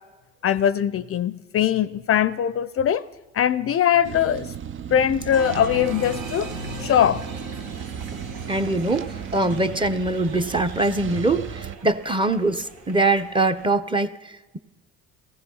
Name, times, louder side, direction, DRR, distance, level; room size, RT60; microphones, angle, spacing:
voice 1, 0.4-3.0 3.3-4.5 4.9-6.5 6.8-7.2, left 9 dB, 45° left, 16 dB, 0.6 m, -21 dB
sound 1, 4.0-11.8, right 9 dB, 40° right, 0.6 m, -36 dB
Applause, 5.3-13.7, right 3 dB, 65° right, 2.0 m, -38 dB
voice 2, 8.5-14.6, right 2 dB, 15° right, 11 dB, 1.0 m, -23 dB
17.0 x 15.0 x 5.5 m, 1.2 s
supercardioid pair, 75°, 33 cm